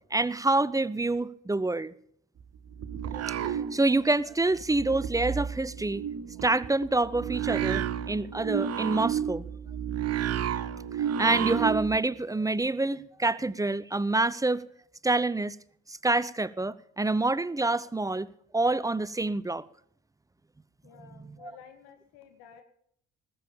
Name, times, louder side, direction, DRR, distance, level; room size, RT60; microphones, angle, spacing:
voice 1, 0.1-1.9 3.1-6.0 6.4-9.5 11.2-14.7 15.0-15.6 15.9-18.3 18.5-19.7 21.2-21.5, right 2 dB, 10° right, 0.6 m, -27 dB
sound 1, 2.4-4.2 4.5-12.0, right 9 dB, 45° right, 1.0 m, -32 dB
voice 2, 20.8-22.6, left 7 dB, 70° left, 1.9 m, -52 dB
19.5 x 7.1 x 7.1 m
figure-of-eight pair, 45°, 36 cm